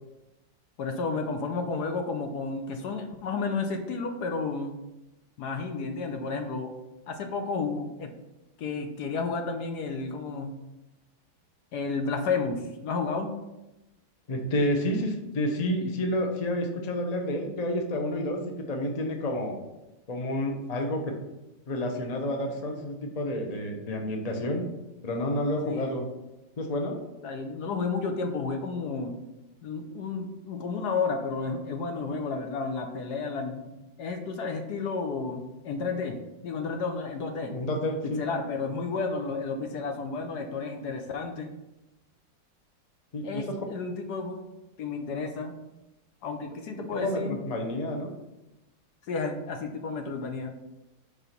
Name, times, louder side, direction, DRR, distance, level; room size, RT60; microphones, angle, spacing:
voice 1, 0.8-4.8 5.4-6.7 7.1-8.1 8.6-10.6 11.7-13.4 25.7-25.9 27.2-29.1 29.6-36.2 36.4-37.6 38.0-41.5 43.2-44.4 44.8-45.6 46.2-47.4 49.1-50.5, left 4 dB, 65° left, 5 dB, 1.1 m, -32 dB
voice 2, 14.3-19.6 20.1-21.1 21.7-24.6 25.0-26.1 26.6-27.0 37.5-38.2 43.1-43.6 46.7-48.1, left 1 dB, 40° left, 3 dB, 0.6 m, -30 dB
4.9 x 4.8 x 5.8 m, 0.98 s
omnidirectional pair, 2.1 m